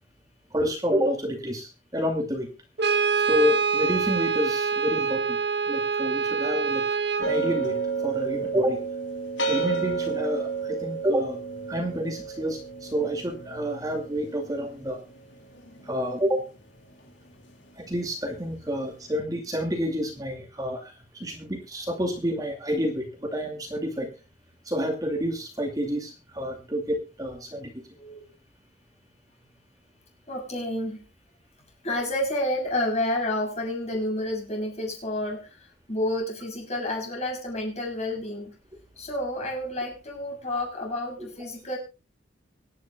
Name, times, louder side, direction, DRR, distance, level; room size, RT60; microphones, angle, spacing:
voice 1, 0.5-2.5 3.2-5.4 5.7-6.9 7.2-8.8 9.5-11.4 11.7-15.0 15.8-16.5 17.8-24.1 24.7-27.8, equal, 20° right, 3 dB, 2.4 m, -29 dB
Brass instrument, 2.8-7.4, right 5 dB, 60° right, 1.0 m, -25 dB
sound 1, 7.2-16.4, right 5 dB, 75° left, 3.4 m, -31 dB
voice 2, 30.3-31.0 31.8-38.5 39.0-41.8, left 1 dB, 35° left, 1 dB, 7.2 m, -30 dB
25.0 x 10.5 x 2.3 m, 0.30 s
head